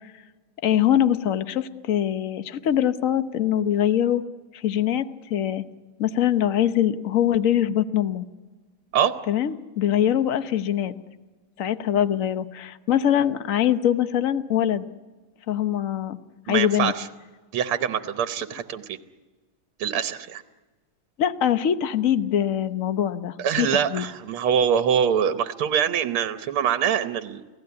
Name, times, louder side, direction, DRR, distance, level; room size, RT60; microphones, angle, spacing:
voice 1, 0.6-4.2 4.5-5.0 5.3-5.6 6.0-8.3 9.3-10.9 11.6-14.8 15.5-16.2 16.5-16.9 21.2-24.1, left 10 dB, 50° left, 11 dB, 1.0 m, -23 dB
voice 2, 16.5-17.1 17.5-19.0 19.8-20.4 23.4-27.4, right 8 dB, 85° right, 10 dB, 1.9 m, -24 dB
28.5 x 17.0 x 9.6 m, 1.3 s
omnidirectional pair, 2.3 m